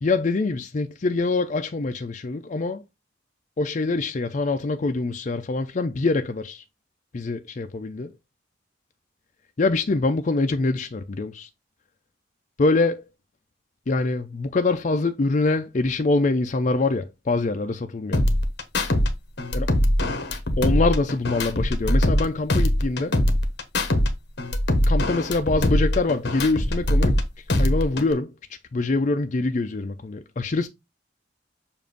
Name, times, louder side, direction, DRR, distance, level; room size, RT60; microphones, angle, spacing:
voice 1, 0.0-2.8 3.6-6.6 7.1-8.1 9.6-11.5 12.6-13.0 13.9-18.2 19.5-19.7 20.6-23.2 24.9-27.2 27.5-28.3 28.7-30.7, left 3 dB, 40° left, 0.4 m, -24 dB
sound 1, 18.1-19.1 19.4-22.2 22.5-24.1 24.4-27.2 27.5-28.1, left 1 dB, 60° left, 1.1 m, -22 dB
7.1 x 2.5 x 5.2 m
head